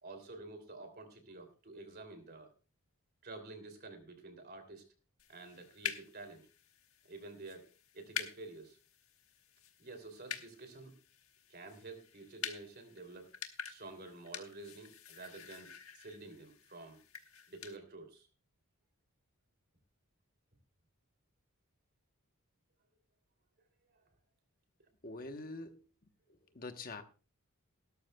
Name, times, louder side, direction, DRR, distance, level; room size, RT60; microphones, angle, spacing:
voice 1, 0.0-2.5 3.2-4.8 5.3-6.5 7.0-8.8 9.8-10.9 11.5-13.3 13.7-17.0 17.5-18.3, right 2 dB, 45° right, 6 dB, 2.8 m, -50 dB
sound 1, 5.2-17.8, left 8 dB, 65° left, 1.4 m, -47 dB
voice 2, 25.0-25.8 26.5-27.0, left 3 dB, 40° left, 7 dB, 1.0 m, -44 dB
17.0 x 13.0 x 2.2 m, 0.35 s
head